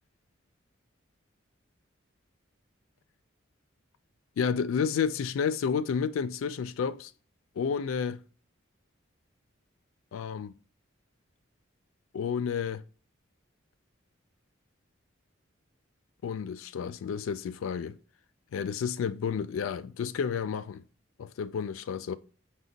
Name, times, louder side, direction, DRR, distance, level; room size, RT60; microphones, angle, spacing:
voice 1, 4.4-7.1 7.6-8.2 10.1-10.5 12.1-12.8 16.2-18.0 18.5-20.8 21.2-22.2, left 6 dB, 80° left, 0.3 m, -31 dB
5.1 x 2.1 x 3.8 m
head